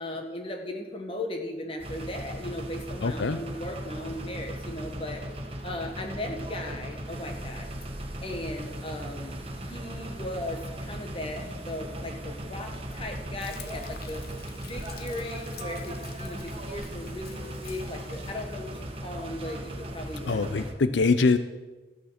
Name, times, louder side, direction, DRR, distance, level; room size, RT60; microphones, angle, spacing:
voice 1, 0.0-5.2 5.6-7.7 8.2-9.4 9.7-14.3 14.6-20.5, left 1 dB, 30° left, 3 dB, 1.6 m, -37 dB
sound 1, 1.8-20.7, right 1 dB, 30° right, 1.3 m, -38 dB
voice 2, 3.0-3.4 20.3-21.4, left 4 dB, 85° left, 12 dB, 0.6 m, -23 dB
Frying (food), 13.4-18.4, left 7 dB, 55° left, 0.9 m, -49 dB
14.0 x 8.8 x 5.9 m, 1.2 s
head